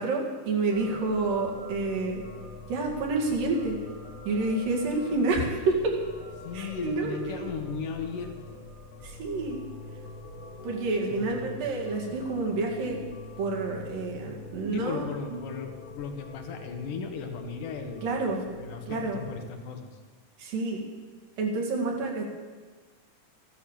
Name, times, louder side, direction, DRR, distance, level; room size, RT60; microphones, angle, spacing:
voice 1, 0.0-2.2 2.7-3.8 4.3-6.0 6.5-7.6 9.0-9.6 10.6-13.0 13.4-15.1 18.0-18.4 18.9-19.2 20.4-20.8 21.4-22.3, right 3 dB, 90° right, 0 dB, 4.0 m, -28 dB
sound 1, 0.7-19.5, left 3 dB, 35° left, 1.4 m, -44 dB
voice 2, 6.4-8.6 11.1-11.6 14.7-19.9, left 6 dB, 75° left, 5 dB, 2.8 m, -37 dB
14.5 x 11.0 x 7.4 m, 1.4 s
omnidirectional pair, 3.8 m